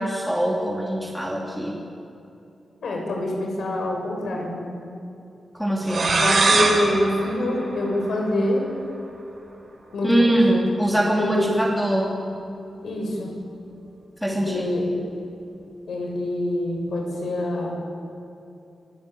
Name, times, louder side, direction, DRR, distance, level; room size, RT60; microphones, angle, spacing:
voice 1, 0.0-1.8 5.5-6.2 10.0-12.1 14.2-14.6, right 1 dB, ahead, -3 dB, 3.1 m, -23 dB
voice 2, 2.8-4.7 6.1-8.7 9.9-10.4 11.2-11.9 12.8-13.4 14.3-14.9 15.9-17.8, left 1 dB, 80° left, 1 dB, 7.4 m, -25 dB
sound 1, 5.8-8.4, right 3 dB, 45° right, 4.8 m, -23 dB
28.5 x 20.0 x 9.3 m, 2.7 s
wide cardioid pair, 160°, 0 cm